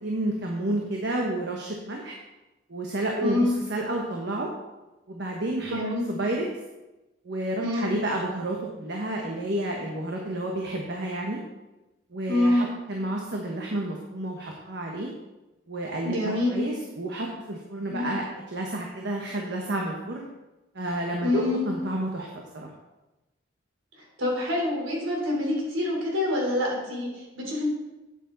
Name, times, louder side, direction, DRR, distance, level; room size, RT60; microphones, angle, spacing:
voice 1, 0.0-2.2 2.7-4.5 5.1-5.8 6.1-6.4 7.2-11.4 12.1-15.1 15.7-18.2 18.5-20.3 20.7-22.3 22.5-22.7, right 1 dB, 60° right, 0 dB, 1.2 m, -30 dB
voice 2, 3.2-3.5 5.7-6.1 7.6-7.9 12.3-12.7 16.0-16.7 17.9-18.1 21.2-21.7 24.2-27.7, left 1 dB, 85° right, -2 dB, 3.8 m, -26 dB
9.2 x 8.5 x 4.0 m, 1.0 s
head